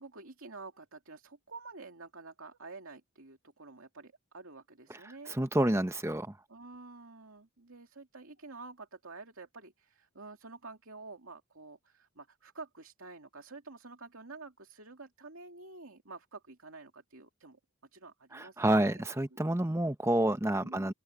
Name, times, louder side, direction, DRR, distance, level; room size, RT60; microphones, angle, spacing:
voice 1, 0.0-5.3 6.5-17.6 17.9-18.9 20.6-20.9, right 3 dB, 70° right, 2.5 m, -49 dB
voice 2, 5.3-6.4 18.3-20.9, right 1 dB, 10° right, 0.8 m, -29 dB
open air
head